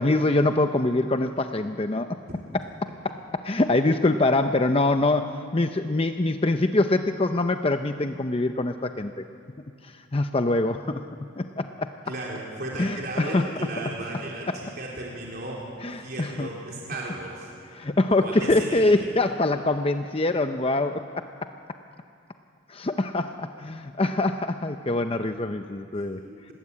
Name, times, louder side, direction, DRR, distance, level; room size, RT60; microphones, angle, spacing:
voice 1, 0.0-2.2 2.5-2.6 3.0-9.1 9.8-11.0 11.4-11.9 12.8-13.5 14.5-14.6 15.8-16.5 17.7-21.5 22.7-26.2, left 2 dB, 30° left, 7 dB, 0.7 m, -24 dB
voice 2, 12.1-17.5 18.2-19.1 26.0-26.5, right 1 dB, 50° right, -3 dB, 3.9 m, -35 dB
27.5 x 20.0 x 8.6 m, 2.5 s
head